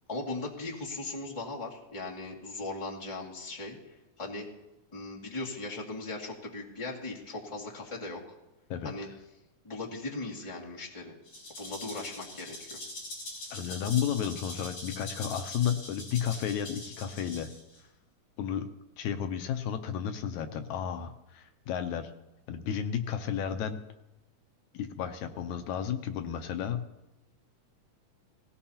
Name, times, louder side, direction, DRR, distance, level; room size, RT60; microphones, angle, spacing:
voice 1, 0.1-3.8 4.2-4.5 4.9-8.2 8.8-9.1 9.6-11.1 11.6-12.8, left 2 dB, 10° left, -4 dB, 1.7 m, -38 dB
Rattle (instrument), 11.3-17.8, left 1 dB, 60° left, 5.5 m, -43 dB
voice 2, 13.5-17.5 18.4-18.7 19.0-22.1 22.5-23.8 24.7-26.8, left 8 dB, 80° left, 8 dB, 2.1 m, -32 dB
18.5 x 17.5 x 2.9 m, 0.94 s
omnidirectional pair, 3.4 m